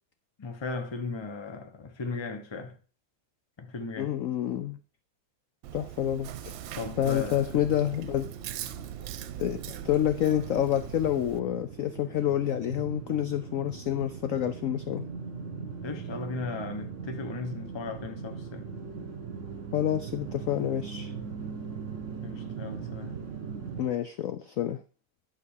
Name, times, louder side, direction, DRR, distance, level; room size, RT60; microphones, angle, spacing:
voice 1, 0.4-2.8 3.6-4.1 6.7-7.6 15.8-18.7 22.2-23.2, left 4 dB, 25° left, 0.6 m, -36 dB
voice 2, 4.0-4.8 5.7-6.5 7.0-8.3 9.4-15.1 19.7-21.1 23.8-24.8, left 11 dB, 75° left, 0.7 m, -28 dB
Chewing mastication, 5.6-11.4, right 13 dB, 80° right, 1.3 m, -42 dB
sound 1, 6.3-23.9, right 6 dB, 40° right, 1.9 m, -40 dB
11.0 x 3.9 x 6.5 m
omnidirectional pair, 2.1 m